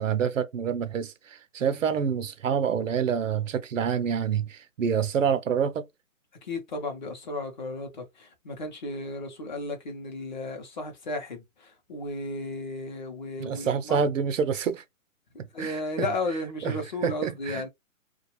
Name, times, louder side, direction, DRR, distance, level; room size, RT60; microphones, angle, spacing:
voice 1, 0.0-5.9 13.4-14.8 15.4-16.1 16.6-16.8 17.0-17.7, right 7 dB, 65° right, 0.6 m, -27 dB
voice 2, 6.4-14.0 15.5-17.7, left 2 dB, 35° left, 0.7 m, -34 dB
2.4 x 2.3 x 2.9 m
hypercardioid pair, 160°, 41 cm